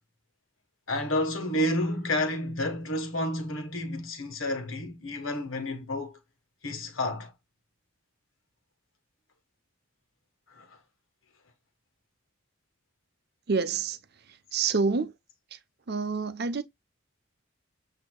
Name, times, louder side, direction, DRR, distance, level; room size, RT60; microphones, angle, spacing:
voice 1, 0.9-6.2 6.6-7.3 10.5-10.8, left 1 dB, 70° left, 1.3 m, -30 dB
voice 2, 13.5-14.0 14.3-15.1 15.5-15.6 15.9-16.6, right 4 dB, 50° right, 0.7 m, -28 dB
8.1 x 2.8 x 2.2 m
head